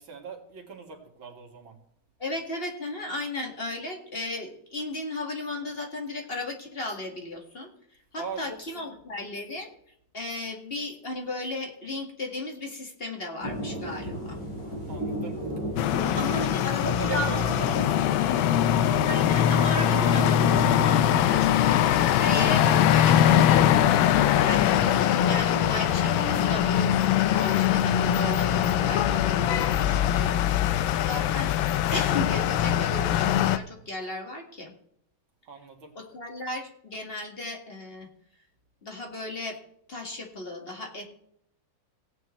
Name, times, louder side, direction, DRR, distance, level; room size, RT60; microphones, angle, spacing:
voice 1, 0.0-1.8 8.1-8.9 14.9-15.4 15.7-16.4 16.8-18.6 35.5-35.9, right 5 dB, 75° right, 2 dB, 2.8 m, -40 dB
voice 2, 2.2-7.7 8.1-9.7 10.1-14.4 16.2-18.0 19.1-24.0 24.4-30.7 31.0-31.5 31.9-34.7 36.0-38.1 38.8-39.6 39.9-41.0, left 2 dB, 30° left, 2 dB, 1.9 m, -35 dB
sound 1, 13.4-32.5, equal, 55° left, 3.9 m, -41 dB
sound 2, 15.8-33.6, left 10 dB, 75° left, 1.4 m, -22 dB
Wind instrument woodwind instrument, 19.0-22.5 22.9-23.1 23.4-24.1 24.3-25.1 25.5-25.7 26.0-26.8, right 5 dB, 55° right, 2.3 m, -40 dB
17.5 x 9.2 x 3.2 m, 0.69 s
omnidirectional pair, 2.2 m